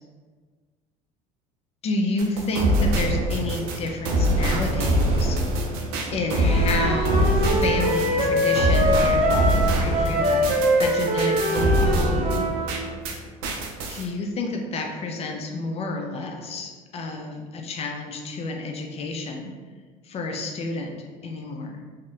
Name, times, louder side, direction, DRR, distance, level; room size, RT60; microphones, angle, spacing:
voice 1, 1.8-5.4 6.1-12.5 13.9-19.5 20.0-21.8, left 2 dB, 35° left, 2 dB, 0.4 m, -30 dB
sound 1, 2.2-13.2 13.4-14.0, equal, 75° right, 0.5 m, -24 dB
Wind instrument woodwind instrument, 6.4-12.7, equal, 35° right, 0.6 m, -23 dB
2.7 x 2.1 x 2.4 m, 1.5 s
supercardioid pair, 85°, 18 cm